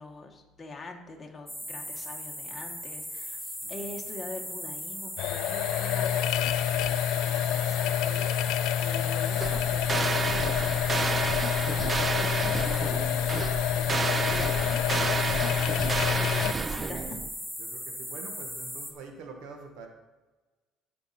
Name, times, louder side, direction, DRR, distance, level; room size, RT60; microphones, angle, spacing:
voice 1, 0.0-11.2 11.6-13.4 13.7-15.7 16.2-17.2, left 2 dB, 20° left, 1 dB, 1.4 m, -44 dB
sound 1, 1.5-18.9, equal, 5° right, 1.2 m, -38 dB
sound 2, 5.2-16.5, left 11 dB, 75° left, 0.4 m, -28 dB
sound 3, 9.4-17.3, right 4 dB, 25° right, 0.3 m, -31 dB
voice 2, 17.6-19.9, right 4 dB, 70° right, 3 dB, 1.4 m, -45 dB
15.0 x 5.1 x 4.2 m, 1.2 s
cardioid pair, 145°, 0 cm